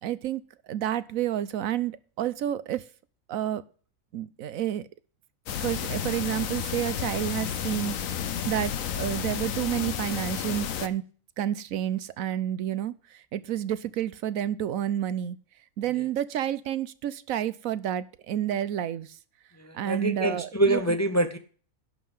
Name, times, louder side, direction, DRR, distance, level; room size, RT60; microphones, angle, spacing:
voice 1, 0.0-2.8 3.3-3.6 4.1-4.9 5.6-11.0 11.4-15.4 15.8-19.2 19.7-20.9, right 11 dB, 80° right, 16 dB, 1.1 m, -30 dB
sound 1, 5.5-10.9, left 8 dB, 75° left, 1.2 m, -31 dB
voice 2, 19.6-21.4, right 1 dB, 15° left, 9 dB, 0.6 m, -25 dB
11.0 x 5.6 x 7.9 m, 0.41 s
omnidirectional pair, 1.4 m